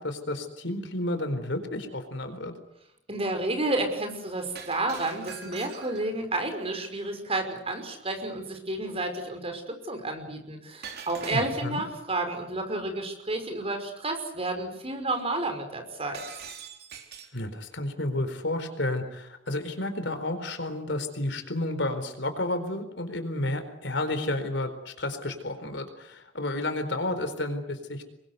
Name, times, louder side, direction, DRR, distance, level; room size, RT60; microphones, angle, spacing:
voice 1, 0.0-2.5 11.3-11.8 17.3-28.0, left 1 dB, 65° left, 8 dB, 4.3 m, -31 dB
voice 2, 3.1-16.2, right 2 dB, 30° right, 6 dB, 5.6 m, -31 dB
Shatter, 4.6-6.2 10.8-11.9 16.1-17.4, right 6 dB, 55° right, 3.8 m, -43 dB
28.0 x 23.0 x 8.1 m, 0.76 s
head